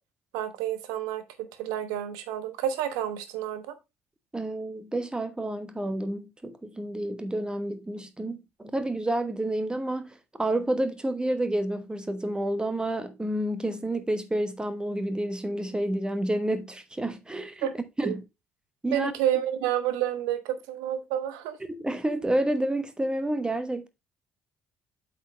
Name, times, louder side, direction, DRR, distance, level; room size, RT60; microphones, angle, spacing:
voice 1, 0.3-3.8 17.6-17.7 18.0-18.2 18.9-21.6, right 11 dB, 65° right, 1.1 m, -29 dB
voice 2, 4.3-18.2 18.8-19.1 21.7-23.9, right 1 dB, 15° right, 1.2 m, -29 dB
8.1 x 4.8 x 3.3 m
figure-of-eight pair, 50°, 7 cm